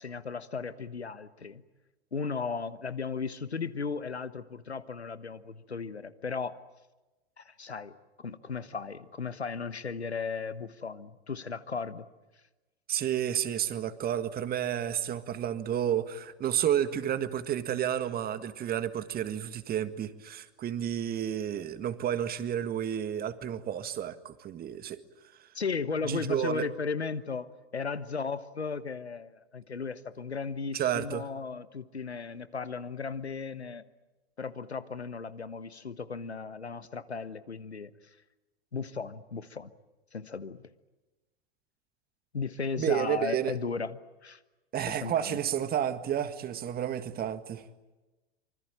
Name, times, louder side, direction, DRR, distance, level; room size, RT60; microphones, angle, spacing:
voice 1, 0.0-1.6 2.1-6.6 7.4-12.1 25.5-33.8 34.4-37.9 38.7-39.7 40.1-40.7 42.3-44.4 44.9-45.4, left 5 dB, 85° left, 14 dB, 1.2 m, -36 dB
voice 2, 12.9-25.0 26.0-26.7 30.7-31.2 42.8-43.5 44.7-47.6, right 10 dB, 30° right, 12 dB, 1.7 m, -31 dB
26.0 x 24.5 x 8.9 m, 1.1 s
figure-of-eight pair, 90°, 32 cm